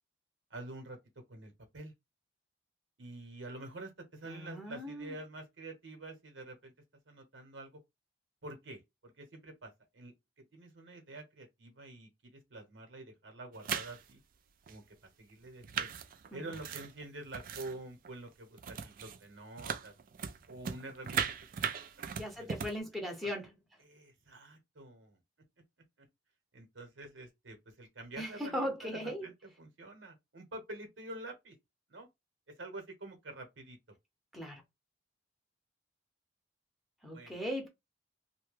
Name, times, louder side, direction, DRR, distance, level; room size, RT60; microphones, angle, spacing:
voice 1, 0.5-1.0 1.3-1.9 3.0-6.7 7.1-7.7 8.4-10.1 10.5-14.2 14.7-14.8 15.2-15.9 16.3-19.9 20.5-21.2 21.5-21.7 22.4-22.5 23.8-25.2 26.5-31.5 31.9-32.1 32.6-33.8 37.1-37.4, right 2 dB, 80° right, 1.1 m, -47 dB
voice 2, 4.2-5.2 16.3-16.5 22.2-23.6 28.2-29.3 34.3-34.6 37.0-37.7, equal, ahead, 0.7 m, -38 dB
sound 1, 13.5-14.1 14.7-14.8 15.5-17.8 18.0-18.3 18.6-19.2 19.6-22.8, right 7 dB, 50° right, 0.4 m, -38 dB
2.8 x 2.2 x 3.2 m
head